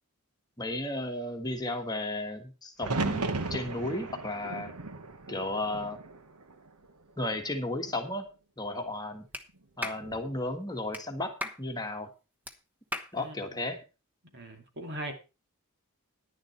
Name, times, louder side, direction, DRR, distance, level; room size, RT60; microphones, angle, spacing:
voice 1, 0.6-3.2 3.5-4.7 5.3-6.0 7.2-8.3 8.6-9.2 9.8-11.3 11.6-12.1 13.1-13.8, left 2 dB, 20° left, 1.6 m, -34 dB
sound 1, 2.8-6.8 7.2-8.0 9.8-10.3, right 3 dB, 90° right, 1.2 m, -36 dB
Clapping, 9.3-9.5 9.8-10.0 10.9-11.0 11.4-11.6 12.5-12.6 12.9-13.1, left 1 dB, 10° right, 1.1 m, -36 dB
voice 2, 13.1-13.5 14.3-15.1, right 1 dB, 50° right, 2.5 m, -40 dB
10.5 x 10.5 x 4.4 m
head